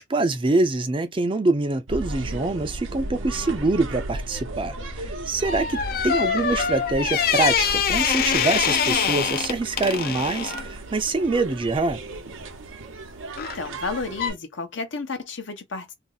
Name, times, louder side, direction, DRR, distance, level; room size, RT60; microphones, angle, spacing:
voice 1, 0.0-12.0, right 3 dB, 25° right, 0.4 m, -25 dB
sound 1, 1.9-14.4, right 2 dB, 90° right, 0.7 m, -35 dB
sound 2, 5.4-10.7 13.4-13.7 14.2-14.3, left 7 dB, 50° left, 0.5 m, -24 dB
voice 2, 13.4-15.9, left 4 dB, 65° left, 0.9 m, -32 dB
2.7 x 2.0 x 3.8 m
head